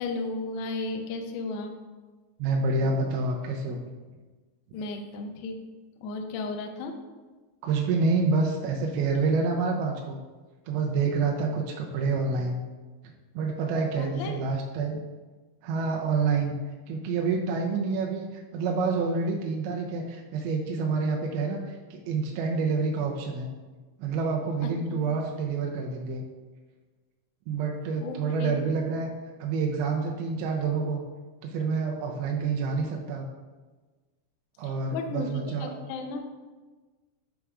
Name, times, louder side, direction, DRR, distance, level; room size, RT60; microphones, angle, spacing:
voice 1, 0.0-1.8 4.7-5.6 6.0-7.0 14.0-14.4 24.6-25.0 28.0-28.6 34.6-36.2, left 3 dB, 80° left, 4 dB, 1.8 m, -34 dB
voice 2, 2.4-3.8 7.6-10.2 10.7-12.6 13.3-15.0 15.6-16.5 16.9-18.3 18.5-23.5 24.0-26.2 27.5-29.1 29.4-31.0 31.4-33.3 34.6-35.7, right 4 dB, 85° right, 0 dB, 2.5 m, -27 dB
7.8 x 3.5 x 4.8 m, 1.3 s
omnidirectional pair, 4.4 m